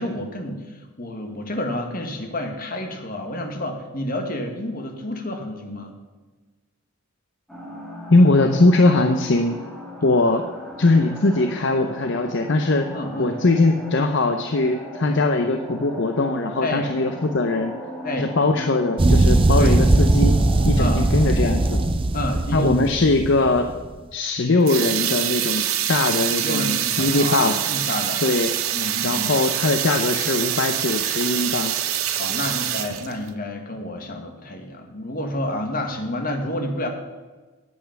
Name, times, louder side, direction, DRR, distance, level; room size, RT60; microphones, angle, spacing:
voice 1, 0.0-5.9 12.9-13.4 16.6-16.9 18.0-18.3 19.6-19.8 20.8-21.0 22.1-22.9 26.4-28.2 28.7-29.3 32.2-36.9, left 1 dB, 40° left, 4 dB, 1.5 m, -29 dB
sound 1, 7.5-21.8, left 1 dB, ahead, 1.7 m, -37 dB
voice 2, 8.1-9.6 10.0-10.4 10.8-12.9 13.2-17.7 18.1-20.3 20.7-21.8 22.5-23.7 24.1-27.7 28.2-28.5 29.0-31.7, left 2 dB, 55° left, 6 dB, 0.6 m, -20 dB
sound 2, 19.0-23.9, right 2 dB, 25° right, 0.5 m, -19 dB
sound 3, 24.6-33.3, right 11 dB, 70° right, 0.8 m, -25 dB
9.2 x 7.9 x 6.9 m, 1.3 s
head